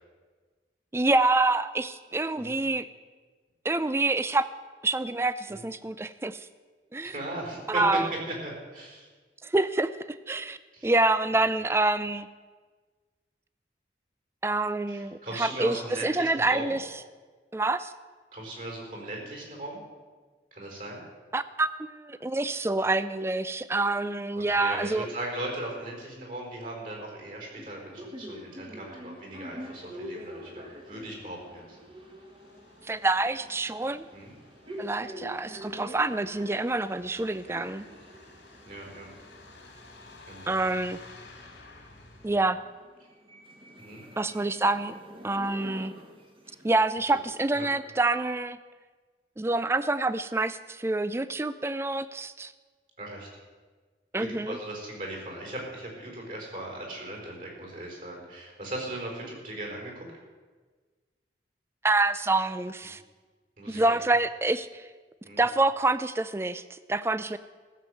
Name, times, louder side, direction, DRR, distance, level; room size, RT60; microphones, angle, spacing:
voice 1, 0.9-2.9 3.6-4.5 4.8-6.5 6.9-7.1 7.7-8.1 9.4-10.6 10.8-12.3 14.4-16.8 17.5-17.9 21.3-25.1 32.8-34.0 34.8-37.9 40.5-41.0 42.2-42.6 44.2-44.9 45.2-45.9 46.6-48.6 49.4-52.5 54.1-54.6 61.8-63.0 63.7-64.9 65.4-67.4, right 2 dB, 15° right, 14 dB, 0.4 m, -27 dB
voice 2, 7.0-9.1 10.7-10.9 14.9-16.7 18.3-19.8 20.5-21.0 24.3-31.8 34.1-34.3 38.7-39.1 40.3-40.6 43.8-44.0 47.1-47.2 47.5-47.7 53.0-53.3 54.1-59.9 63.6-64.0 65.2-65.4, right 1 dB, 50° right, 0 dB, 4.3 m, -38 dB
sound 1, 27.6-46.8, equal, 30° right, 1.5 m, -46 dB
Truck, 29.6-42.5, left 3 dB, 85° left, 2.8 m, -54 dB
15.0 x 7.2 x 7.8 m, 1.4 s
head